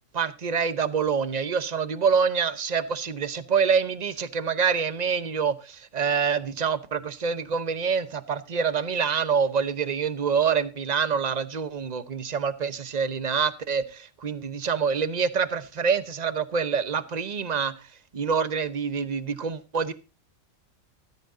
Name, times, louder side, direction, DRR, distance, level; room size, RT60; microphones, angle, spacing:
voice 1, 0.1-17.7 18.1-19.9, right 6 dB, 35° right, 0.9 m, -26 dB
14.0 x 14.0 x 2.7 m
omnidirectional pair, 1.3 m